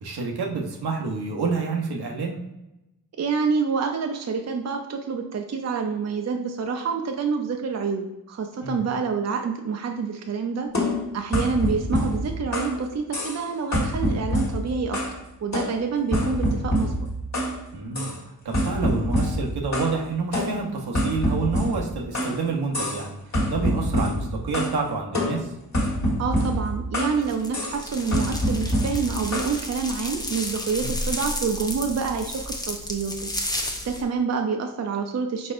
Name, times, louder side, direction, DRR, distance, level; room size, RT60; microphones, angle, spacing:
voice 1, 0.0-2.4 8.6-8.8 17.7-18.1 18.4-23.2 23.5-25.5 30.8-31.0, right 4 dB, 80° right, 0 dB, 0.9 m, -28 dB
voice 2, 3.2-10.7 11.1-15.0 15.4-16.9 26.2-33.3 33.8-35.5, right 5 dB, 45° right, 4 dB, 0.5 m, -27 dB
sound 1, 10.7-12.8 13.1-13.4 13.7-15.2 15.5-17.6 17.9-18.2 18.5-20.0 20.3-22.4 22.7-23.1 23.3-24.8 25.1-27.2 27.5-27.8 28.1-29.5, equal, 45° left, 1.4 m, -26 dB
sound 2, 27.2-34.0, left 1 dB, 10° left, 0.6 m, -32 dB
4.6 x 4.2 x 2.5 m, 0.95 s
wide cardioid pair, 90°, 38 cm